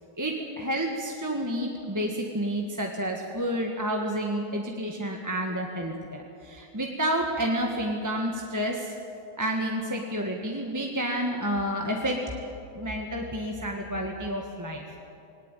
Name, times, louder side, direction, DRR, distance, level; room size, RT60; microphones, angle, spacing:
voice 1, 0.2-8.9 9.4-15.0, equal, 10° right, 0 dB, 1.3 m, -30 dB
19.0 x 19.0 x 9.1 m, 2.6 s
omnidirectional pair, 2.1 m